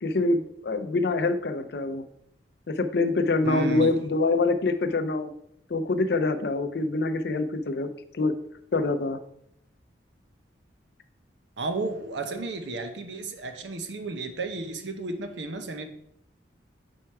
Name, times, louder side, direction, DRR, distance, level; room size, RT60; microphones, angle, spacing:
voice 1, 0.0-2.0 2.7-5.3 5.7-7.9 8.1-8.3 8.7-9.2, left 3 dB, 60° left, 10 dB, 0.5 m, -25 dB
voice 2, 3.4-4.0 11.6-15.9, right 3 dB, 75° right, 7 dB, 0.7 m, -33 dB
4.6 x 4.4 x 4.6 m, 0.73 s
head